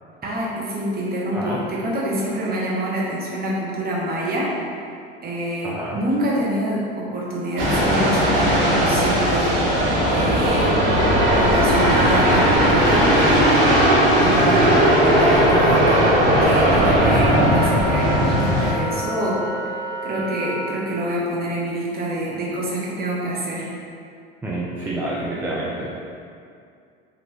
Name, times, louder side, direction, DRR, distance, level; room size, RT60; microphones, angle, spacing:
voice 1, 0.2-4.5 5.2-10.8 11.3-13.7 14.2-16.1 16.4-19.5 20.0-23.7, right 1 dB, 30° right, -5 dB, 0.9 m, -26 dB
voice 2, 5.6-6.0 24.4-25.9, right 1 dB, 5° right, -7 dB, 0.4 m, -28 dB
sound 1, 7.6-18.7, equal, 70° right, 1.4 m, -17 dB
Wind instrument woodwind instrument, 9.5-20.8, equal, 10° left, 1.3 m, -30 dB
3.1 x 2.5 x 3.1 m, 2.3 s
hypercardioid pair, 80°, 30 cm